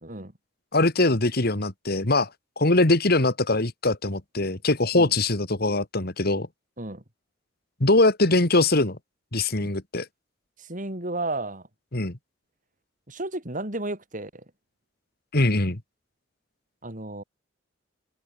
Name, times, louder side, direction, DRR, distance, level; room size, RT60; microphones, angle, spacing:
voice 1, 0.0-0.3 4.9-5.1 6.8-7.0 10.6-11.6 13.1-14.4 16.8-17.2, right 2 dB, 45° right, 5.5 m, -33 dB
voice 2, 0.7-2.3 2.6-6.5 7.8-9.0 9.3-10.1 11.9-12.2 15.3-15.8, left 2 dB, 55° left, 2.2 m, -22 dB
head